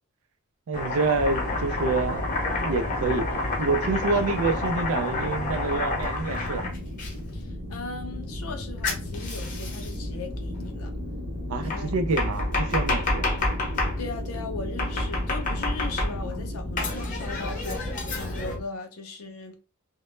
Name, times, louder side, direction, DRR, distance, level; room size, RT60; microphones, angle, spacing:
Domestic sounds home sounds, 0.7-7.1 8.8-10.0 11.7-14.0 14.8-16.3 16.8-18.5, left 2 dB, 40° left, 0.7 m, -29 dB
voice 1, 0.7-3.3 3.6-6.7 11.5-13.3, right 3 dB, 80° right, 0.4 m, -27 dB
sound 1, 1.1-18.6, left 1 dB, 55° right, 0.9 m, -34 dB
voice 2, 7.3-10.9 11.6-11.9 14.0-19.6, left 3 dB, 75° left, 0.5 m, -38 dB
2.1 x 2.0 x 3.0 m
head